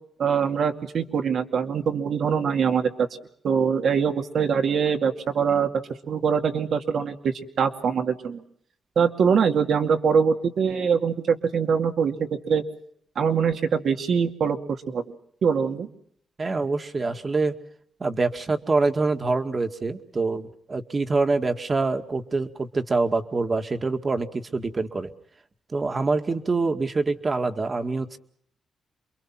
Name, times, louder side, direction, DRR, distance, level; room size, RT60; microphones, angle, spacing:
voice 1, 0.2-3.1 3.4-5.7 6.1-8.4 9.0-12.6 13.2-14.6 14.9-15.0 15.4-15.9, right 6 dB, 70° right, 5 dB, 2.4 m, -23 dB
voice 2, 16.4-17.6 18.0-25.1 25.7-28.2, right 3 dB, 35° right, 7 dB, 2.0 m, -25 dB
28.0 x 23.0 x 6.0 m, 0.67 s
cardioid pair, 80°, 0 cm